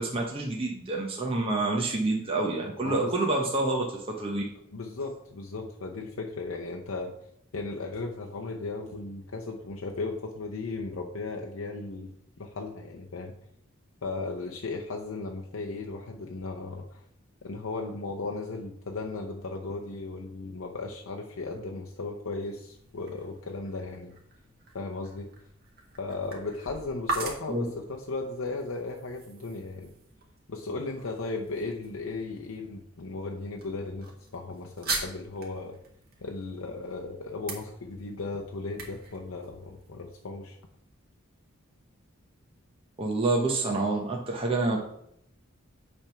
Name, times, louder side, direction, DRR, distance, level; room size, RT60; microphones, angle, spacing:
voice 1, 0.0-4.4 27.5-27.7 43.0-44.8, right 2 dB, 25° right, -1 dB, 0.9 m, -28 dB
voice 2, 2.8-3.1 4.7-7.1 7.5-12.1 12.4-13.3 14.0-17.0 17.4-24.1 24.7-25.3 26.0-29.9 30.5-35.8 36.2-40.6, left 3 dB, 75° left, 1 dB, 0.7 m, -36 dB
sound 1, 22.4-40.2, right 3 dB, 45° right, 1.6 m, -42 dB
8.7 x 3.5 x 5.7 m, 0.74 s
head